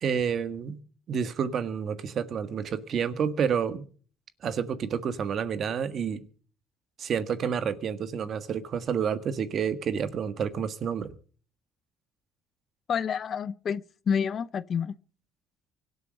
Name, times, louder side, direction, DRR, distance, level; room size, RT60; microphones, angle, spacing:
voice 1, 0.0-0.8 1.1-3.9 4.4-6.2 7.0-11.1, right 7 dB, 45° right, 1.6 m, -29 dB
voice 2, 12.9-14.9, left 7 dB, 40° left, 0.6 m, -29 dB
24.5 x 8.2 x 5.3 m
cardioid pair, 135°, 0 cm